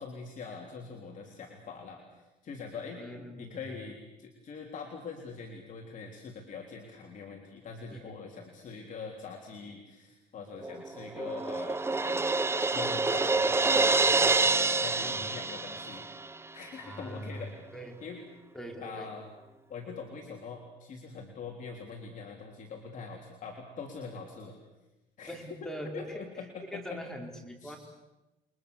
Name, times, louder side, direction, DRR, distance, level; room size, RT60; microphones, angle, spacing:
voice 1, 0.0-3.0 3.4-12.2 12.7-16.1 16.5-17.5 18.0-18.2 18.8-19.3 19.7-24.6 25.2-25.4 25.6-27.1 27.6-27.8, left 5 dB, 50° left, 1 dB, 3.6 m, -43 dB
voice 2, 2.9-3.7 7.9-8.1 15.0-15.2 16.8-17.5 17.7-18.0 18.5-19.1 25.3-26.2 26.7-27.8, equal, 5° left, 2 dB, 4.6 m, -42 dB
Crash cymbal, 10.6-16.3, right 3 dB, 15° right, 0.8 m, -27 dB
30.0 x 23.0 x 6.9 m, 1.0 s
cardioid pair, 110°, 17 cm